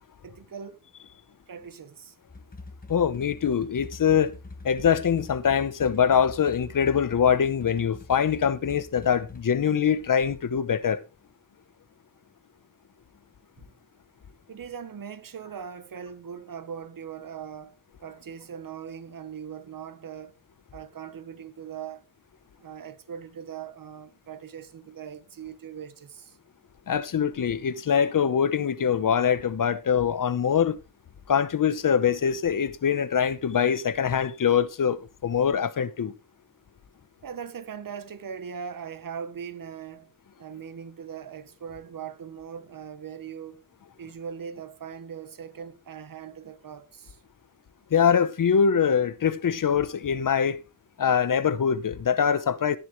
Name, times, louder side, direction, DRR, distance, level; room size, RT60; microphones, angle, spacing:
voice 1, 0.2-0.8 1.5-2.1 13.6-13.7 14.5-20.4 20.7-22.0 22.6-26.4 37.2-40.1 40.4-43.6 44.0-47.2, right 7 dB, 80° right, 1.1 m, -40 dB
sound 1, 2.3-9.4, left 3 dB, 25° left, 1.4 m, -44 dB
voice 2, 2.9-4.4 4.6-11.0 26.9-30.8 31.3-36.1 47.9-50.6 51.0-52.8, left 7 dB, 75° left, 0.9 m, -23 dB
18.0 x 7.0 x 3.2 m
wide cardioid pair, 90°, 33 cm